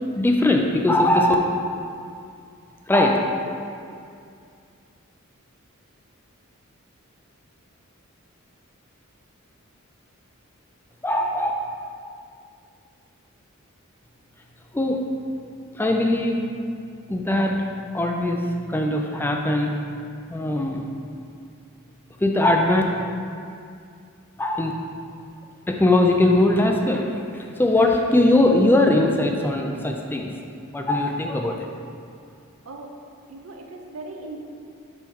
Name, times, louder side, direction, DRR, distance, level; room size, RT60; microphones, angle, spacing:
voice 1, 0.1-1.3 2.9-3.2 11.0-11.5 14.7-15.0 15.7-16.4 17.1-17.6 17.9-18.4 18.7-19.8 20.3-20.9 22.2-22.8 24.4-24.7 25.7-30.3 30.7-31.5, left 1 dB, 10° left, 1 dB, 0.4 m, -20 dB
voice 2, 33.3-34.4, right 2 dB, 80° right, 2 dB, 0.7 m, -38 dB
5.4 x 4.4 x 4.6 m, 2.4 s
head